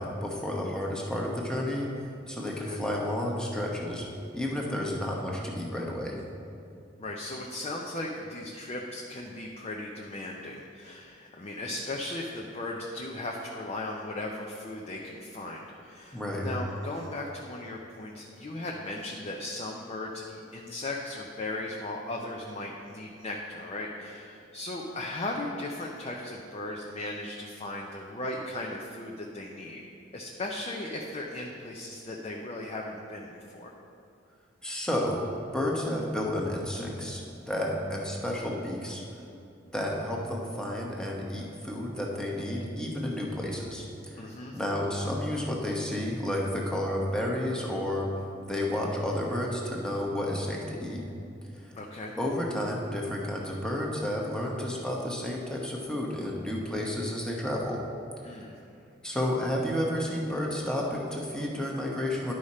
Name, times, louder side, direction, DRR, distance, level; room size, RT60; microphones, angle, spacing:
voice 1, 0.0-1.9 2.3-4.1 4.3-6.2 16.1-16.5 34.6-35.3 35.5-39.0 39.7-44.3 44.5-48.1 48.5-51.0 52.2-57.8 59.0-62.3, left 1 dB, 5° left, -2 dB, 1.0 m, -31 dB
voice 2, 2.4-2.8 7.0-29.8 30.1-33.7 44.2-44.6 51.8-52.1 58.2-58.5, left 2 dB, 35° left, -1 dB, 0.6 m, -37 dB
11.0 x 5.0 x 4.2 m, 2.5 s
head